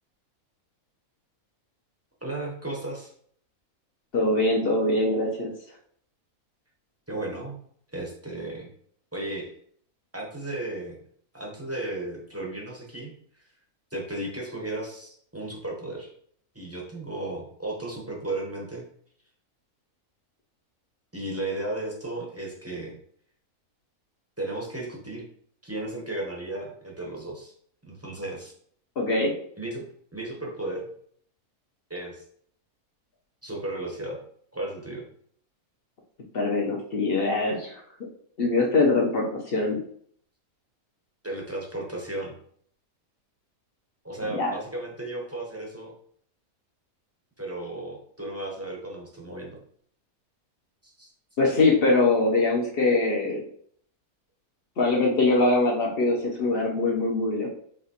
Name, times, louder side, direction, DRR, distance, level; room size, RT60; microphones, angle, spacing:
voice 1, 2.2-3.1 7.1-7.6 7.9-8.7 9.1-9.5 10.1-11.0 11.3-13.5 13.9-16.1 16.5-18.9 21.1-22.9 24.4-25.3 25.6-27.5 27.9-28.5 29.6-29.8 30.1-30.8 31.9-32.2 33.4-34.2 34.5-35.0 41.2-42.4 44.0-45.9 47.4-49.6 50.8-51.1, right 2 dB, 15° right, -2 dB, 0.6 m, -34 dB
voice 2, 4.1-5.5 29.0-29.3 36.3-37.8 38.4-39.8 44.3-44.5 51.4-53.4 54.8-57.5, left 2 dB, 50° left, -1 dB, 0.8 m, -23 dB
4.9 x 3.0 x 2.8 m, 0.62 s
omnidirectional pair, 1.5 m